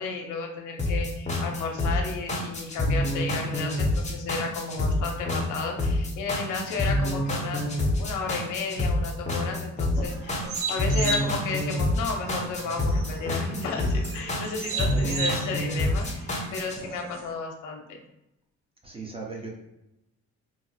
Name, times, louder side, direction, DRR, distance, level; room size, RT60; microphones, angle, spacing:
voice 1, 0.0-7.7 8.0-18.0, left 4 dB, 85° left, 2 dB, 0.7 m, -33 dB
sound 1, 0.8-16.8, left 1 dB, 25° left, 0.7 m, -27 dB
sound 2, 10.0-17.3, right 3 dB, 50° right, 0.5 m, -36 dB
voice 2, 18.8-19.6, right 3 dB, 20° right, -1 dB, 0.8 m, -38 dB
2.7 x 2.0 x 3.9 m, 0.89 s
cardioid pair, 90°, 30 cm